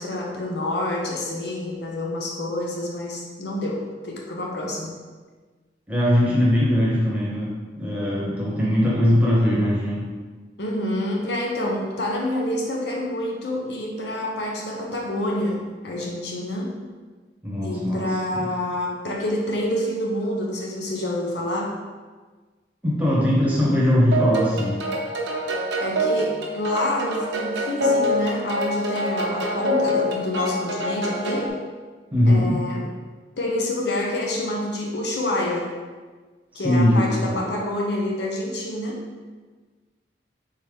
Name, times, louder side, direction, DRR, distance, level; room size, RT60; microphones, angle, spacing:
voice 1, 0.0-4.9 10.6-16.7 17.6-21.7 25.8-31.5 32.3-32.8 33.4-35.7 36.5-39.0, left 1 dB, 70° left, -1 dB, 0.7 m, -27 dB
voice 2, 5.9-10.1 17.4-18.5 22.8-24.8 32.1-32.6 36.5-37.4, left 1 dB, 10° right, -7 dB, 1.0 m, -21 dB
sound 1, 24.1-31.5, equal, 85° right, 0.9 m, -25 dB
4.1 x 3.8 x 3.4 m, 1.4 s
head